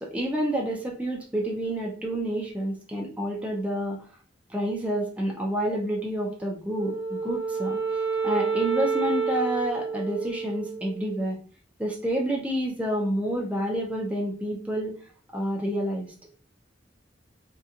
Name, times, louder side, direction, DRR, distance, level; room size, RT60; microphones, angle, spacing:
voice 1, 0.0-4.0 4.5-7.8 8.2-11.4 11.8-14.9 15.3-16.1, right 1 dB, 10° right, -2 dB, 0.4 m, -29 dB
Wind instrument woodwind instrument, 6.7-11.2, right 5 dB, 80° right, 0.4 m, -29 dB
2.7 x 2.2 x 2.4 m, 0.41 s
head